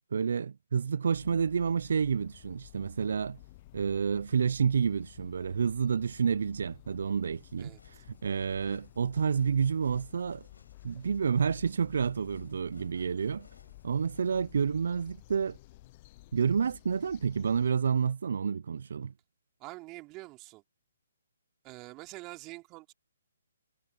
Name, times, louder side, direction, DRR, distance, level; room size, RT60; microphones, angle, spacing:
voice 1, 0.1-3.4 3.7-10.5 10.8-13.5 13.8-15.6 16.3-19.1, right 6 dB, 65° right, 0.6 m, -29 dB
sound 1, 1.1-17.7, left 18 dB, 35° left, 0.7 m, -54 dB
sound 2, 7.3-14.5, left 4 dB, 80° left, 6.1 m, -63 dB
voice 2, 7.6-8.0 19.6-20.6 21.6-22.9, right 22 dB, 25° right, 3.5 m, -46 dB
figure-of-eight pair, 140°, 0 cm